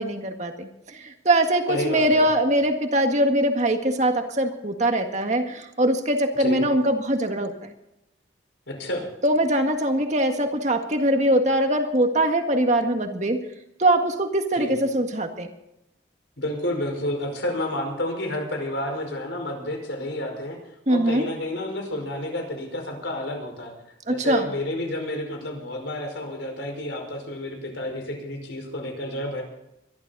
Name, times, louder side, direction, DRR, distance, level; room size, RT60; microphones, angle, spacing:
voice 1, 0.0-7.7 9.2-13.4 13.8-15.5 20.9-21.3 24.1-24.5, right 1 dB, 40° right, 5 dB, 1.8 m, -22 dB
voice 2, 1.7-2.3 6.3-6.6 8.7-9.0 14.5-14.7 16.4-20.6 20.9-23.7 24.1-29.4, left 1 dB, 90° left, 2 dB, 5.2 m, -30 dB
23.5 x 12.5 x 4.1 m, 0.85 s
head